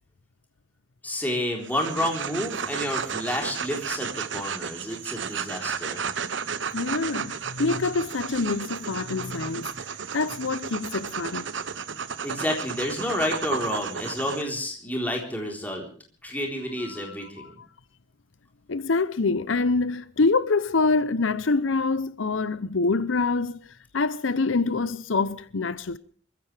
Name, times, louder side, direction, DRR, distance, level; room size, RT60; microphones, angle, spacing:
voice 1, 1.0-6.1 12.2-15.9 16.2-17.6, left 1 dB, 10° left, 3.8 m, -30 dB
sound 1, 1.6-14.4, right 6 dB, 65° right, 1.0 m, -33 dB
voice 2, 6.7-9.7 10.1-11.5 16.8-17.7 18.7-26.0, left 3 dB, 80° left, 0.7 m, -26 dB
27.0 x 15.5 x 3.4 m
head